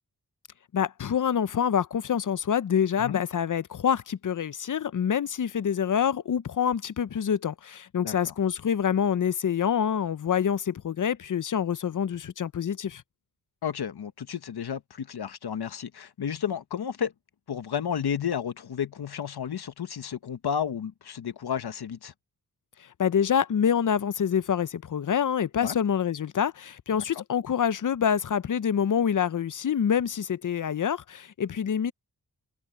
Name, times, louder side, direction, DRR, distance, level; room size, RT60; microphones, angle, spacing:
voice 1, 0.7-13.0 23.0-31.9, left 8 dB, 55° left, 0.7 m, -26 dB
voice 2, 8.0-8.3 13.6-17.1 17.5-22.1 25.6-25.8 26.9-27.2, left 8 dB, 75° left, 1.2 m, -32 dB
wide cardioid pair, 85°, 38 cm